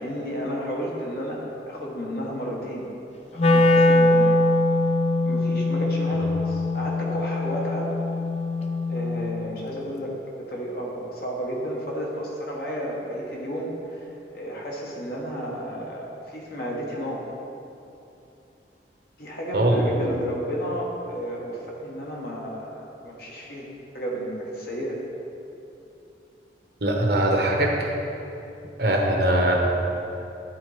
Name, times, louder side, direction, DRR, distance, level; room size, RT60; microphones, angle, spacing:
voice 1, 0.0-2.9 3.3-4.3 5.2-7.9 8.9-17.2 19.2-23.7 23.9-25.0, equal, 60° left, -3 dB, 1.5 m, -32 dB
Wind instrument woodwind instrument, 3.4-9.5, left 2 dB, 35° left, 0.5 m, -22 dB
voice 2, 26.8-27.7 28.8-29.7, right 1 dB, 60° right, 0 dB, 1.1 m, -21 dB
10.5 x 4.1 x 5.0 m, 2.9 s
head